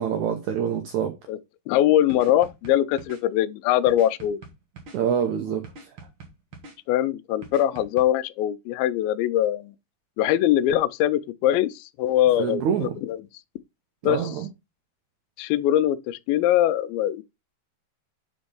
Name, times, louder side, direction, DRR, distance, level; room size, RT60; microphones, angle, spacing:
voice 1, 0.0-1.1 4.9-5.9 12.4-13.0 14.0-14.5, right 8 dB, 75° right, 1.7 m, -26 dB
voice 2, 1.7-4.4 6.9-9.7 10.2-13.2 14.0-14.2 15.4-17.2, left 12 dB, 80° left, 2.2 m, -22 dB
sound 1, 2.1-3.2 3.9-5.0 5.6-6.8 7.4-8.1, right 3 dB, 55° right, 1.4 m, -43 dB
5.4 x 5.2 x 5.3 m
omnidirectional pair, 4.5 m